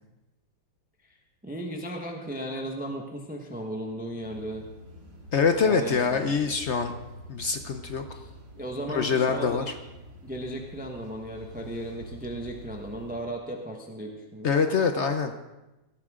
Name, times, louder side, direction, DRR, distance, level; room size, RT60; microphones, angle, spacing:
voice 1, 1.4-4.7 5.6-6.5 8.1-8.3 8.6-9.7 10.2-14.5, right 1 dB, 5° right, 1 dB, 0.9 m, -36 dB
sound 1, 4.2-13.2, equal, 50° right, 2.7 m, -47 dB
voice 2, 5.3-6.9 7.3-8.0 8.9-9.7 14.4-15.3, left 5 dB, 80° left, 7 dB, 0.6 m, -24 dB
17.0 x 13.0 x 3.7 m, 1.0 s
omnidirectional pair, 2.2 m